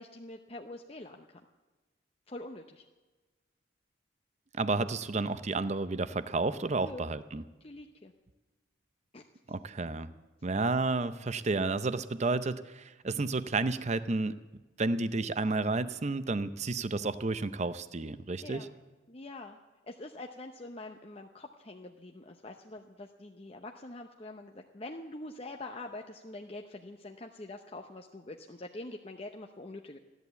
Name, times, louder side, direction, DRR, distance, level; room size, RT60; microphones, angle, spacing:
voice 1, 0.0-1.4 2.3-2.8 6.8-7.1 7.6-8.1 9.1-9.2 18.4-18.7 19.1-19.6 19.8-30.0, left 2 dB, 30° left, 3 dB, 0.7 m, -45 dB
voice 2, 4.5-7.4 9.5-10.1 10.4-14.3 14.8-18.7, right 3 dB, 35° right, 13 dB, 0.6 m, -31 dB
15.0 x 11.0 x 8.0 m, 1.3 s
head